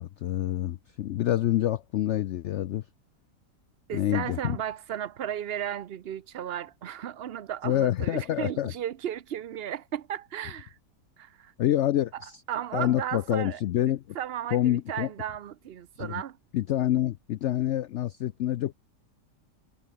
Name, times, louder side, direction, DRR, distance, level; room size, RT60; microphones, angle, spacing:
voice 1, 0.0-2.8 3.9-4.6 7.6-8.7 11.6-12.4 12.7-14.2 14.5-15.1 16.0-16.2 16.5-18.7, left 12 dB, 90° left, 0.6 m, -27 dB
voice 2, 3.9-10.8 11.2-11.5 12.1-12.2 12.5-13.6 13.9-16.4, right 10 dB, 55° right, 0.7 m, -35 dB
omnidirectional pair, 1.8 m